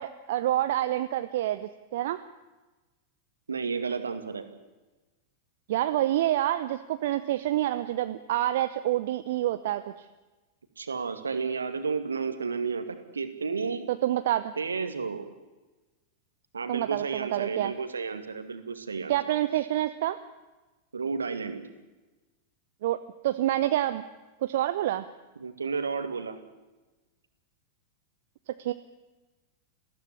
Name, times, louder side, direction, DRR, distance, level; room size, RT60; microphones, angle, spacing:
voice 1, 0.0-2.2 5.7-9.8 13.9-14.5 16.7-17.7 19.1-20.2 22.8-24.0 24.4-25.1 28.6-28.7, right 13 dB, 55° right, 11 dB, 0.8 m, -27 dB
voice 2, 3.5-4.5 10.8-13.8 14.6-15.3 16.5-19.2 20.9-21.6 25.4-26.4, right 5 dB, 75° right, 8 dB, 2.2 m, -32 dB
20.0 x 15.5 x 9.9 m, 1.1 s
figure-of-eight pair, 90°, 0 cm